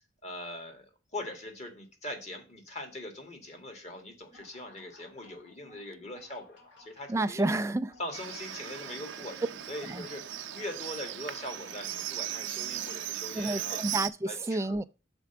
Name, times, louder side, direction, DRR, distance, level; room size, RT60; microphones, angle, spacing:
voice 1, 0.0-7.5 8.0-9.4 9.7-13.8 14.3-14.8, left 1 dB, 35° left, 1.8 m, -42 dB
sound 1, 4.2-13.1, left 2 dB, 70° left, 2.5 m, -59 dB
voice 2, 7.1-8.0 8.9-9.0 9.8-10.1 13.4-14.8, right 2 dB, 15° right, 0.3 m, -30 dB
Livestock farm animals working animals, 8.1-14.1, right 11 dB, 75° right, 0.6 m, -37 dB
6.0 x 4.4 x 5.7 m
head